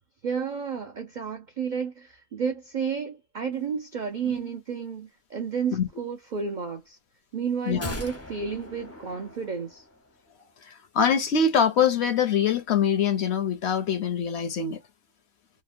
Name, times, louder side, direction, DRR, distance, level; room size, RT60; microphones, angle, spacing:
voice 1, 0.2-7.0 7.3-9.8, right 6 dB, 75° right, 0.4 m, -31 dB
sound 1, 7.8-10.2 10.5-10.6, left 1 dB, 20° left, 0.4 m, -40 dB
voice 2, 10.9-14.8, left 6 dB, 65° left, 0.7 m, -23 dB
2.9 x 2.0 x 2.4 m
omnidirectional pair, 1.5 m